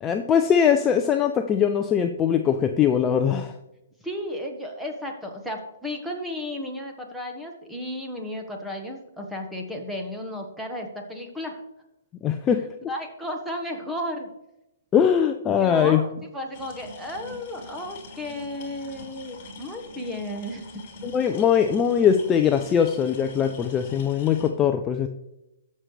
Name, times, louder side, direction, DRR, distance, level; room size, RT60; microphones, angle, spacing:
voice 1, 0.0-3.5 12.2-12.6 14.9-16.0 21.0-25.1, left 8 dB, 20° left, 6 dB, 0.6 m, -21 dB
voice 2, 4.0-11.6 12.9-14.3 15.6-20.7, left 1 dB, ahead, 1 dB, 1.5 m, -33 dB
sound 1, 16.5-24.5, left 2 dB, 35° left, 2.7 m, -44 dB
14.0 x 6.5 x 3.3 m, 0.88 s
hypercardioid pair, 145°, 0 cm